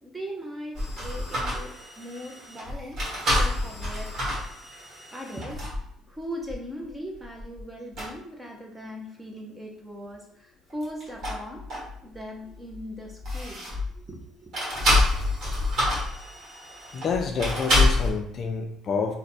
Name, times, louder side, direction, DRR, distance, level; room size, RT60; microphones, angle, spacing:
voice 1, 0.0-3.0 3.3-4.2 5.1-5.6 6.1-11.6 12.0-14.5, equal, 10° right, 0 dB, 0.6 m, -39 dB
sound 1, 0.7-5.9 6.5-6.6 7.2-7.6 7.9-8.1 10.7-12.2 12.5-14.0 14.5-18.1, left 1 dB, 40° right, 1.4 m, -27 dB
voice 2, 16.9-19.2, left 5 dB, 40° left, 3 dB, 0.4 m, -28 dB
3.0 x 2.1 x 4.1 m, 0.67 s
cardioid pair, 150°, 0 cm